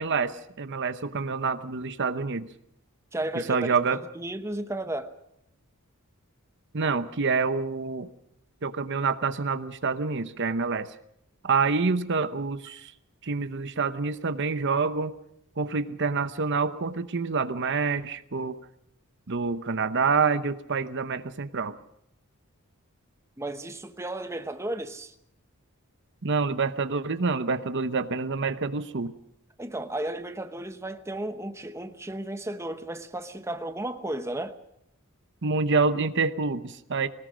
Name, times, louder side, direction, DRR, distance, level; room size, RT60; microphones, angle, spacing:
voice 1, 0.0-2.5 3.3-4.0 6.7-8.1 8.6-10.9 11.4-12.9 13.2-15.1 15.6-18.6 19.3-21.8 26.2-29.1 35.4-37.1, right 4 dB, 55° right, 0.8 m, -27 dB
voice 2, 3.1-3.7 4.1-5.1 23.4-25.1 29.6-34.6, right 1 dB, 10° right, 0.9 m, -34 dB
22.0 x 19.0 x 6.3 m
head